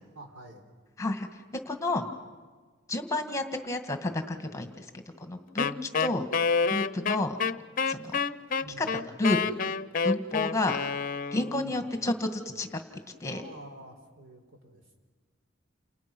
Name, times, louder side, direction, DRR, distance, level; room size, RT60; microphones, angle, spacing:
voice 1, 0.1-0.7 8.6-9.2 11.6-11.9 13.3-15.0, right 1 dB, 75° right, 3 dB, 4.7 m, -48 dB
voice 2, 1.7-2.0 2.9-4.9 5.2-6.2 6.7-7.4 7.9-8.2 8.8-8.9 9.2-9.5 10.0-10.8 11.3-12.8 13.2-13.4, left 2 dB, 15° left, 7 dB, 1.9 m, -30 dB
Wind instrument woodwind instrument, 5.6-11.6, left 5 dB, 45° left, 0.7 m, -28 dB
29.5 x 29.0 x 6.3 m, 1.5 s
head